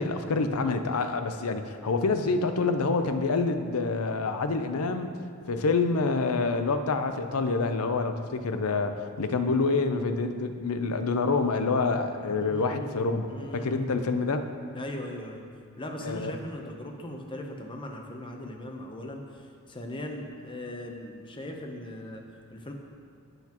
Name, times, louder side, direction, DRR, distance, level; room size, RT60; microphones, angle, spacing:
voice 1, 0.0-5.1 5.5-13.3 13.5-14.5 16.0-16.3, left 3 dB, 90° left, 8 dB, 0.6 m, -27 dB
voice 2, 12.2-13.0 13.3-13.9 14.7-15.5 15.8-22.7, left 1 dB, 25° left, 3 dB, 0.7 m, -39 dB
11.5 x 8.1 x 3.0 m, 2.2 s
head